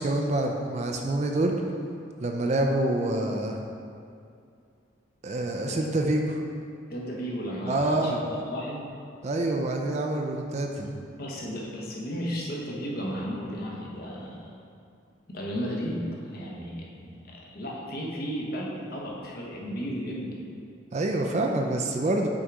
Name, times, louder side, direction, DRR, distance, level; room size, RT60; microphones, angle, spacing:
voice 1, 0.0-1.5 2.2-3.6 5.2-6.4 7.7-8.2 9.2-10.9 20.9-22.3, right 2 dB, 35° right, 2 dB, 0.4 m, -26 dB
voice 2, 6.9-8.9 11.2-14.5 15.3-20.4, equal, 50° left, -3 dB, 1.0 m, -34 dB
6.2 x 3.9 x 4.7 m, 2.4 s
head